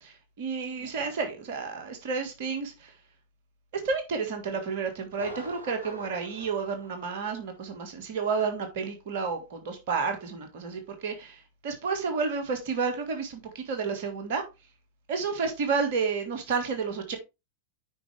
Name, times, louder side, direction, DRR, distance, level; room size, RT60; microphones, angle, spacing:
voice 1, 0.0-2.9 3.7-14.4 15.1-17.2, right 5 dB, 50° right, 1.7 m, -31 dB
Thunder, 5.1-7.7 7.9-8.0 8.6-8.7, right 1 dB, 80° right, 2.6 m, -45 dB
9.0 x 5.4 x 3.4 m
figure-of-eight pair, 90°, 0 cm